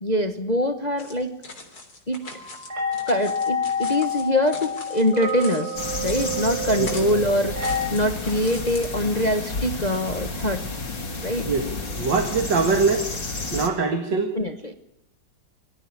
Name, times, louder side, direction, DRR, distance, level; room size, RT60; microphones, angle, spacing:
voice 1, 0.0-1.3 2.1-2.2 3.1-7.6 7.9-10.6 11.2-11.5 14.3-14.7, left 1 dB, 25° left, 9 dB, 1.2 m, -24 dB
sound 1, 1.0-8.9, left 3 dB, 55° left, 4.2 m, -41 dB
sound 2, 2.2-7.9, left 2 dB, 40° right, 6.2 m, -29 dB
sound 3, 5.8-13.7, left 3 dB, 80° left, 4.0 m, -31 dB
voice 2, 11.4-13.1 13.5-14.3, right 4 dB, 80° right, 7 dB, 2.5 m, -23 dB
25.0 x 14.0 x 9.7 m, 0.88 s
omnidirectional pair, 1.9 m